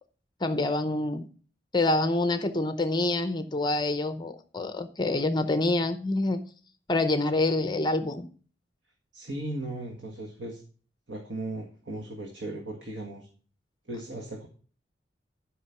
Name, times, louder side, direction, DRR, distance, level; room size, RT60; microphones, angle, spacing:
voice 1, 0.4-1.3 1.7-6.4 6.9-8.3, left 2 dB, 25° left, 8 dB, 0.7 m, -26 dB
voice 2, 9.1-10.6 11.1-13.3 13.9-14.5, right 1 dB, 85° right, 1 dB, 1.8 m, -37 dB
11.5 x 5.4 x 5.8 m, 0.41 s
head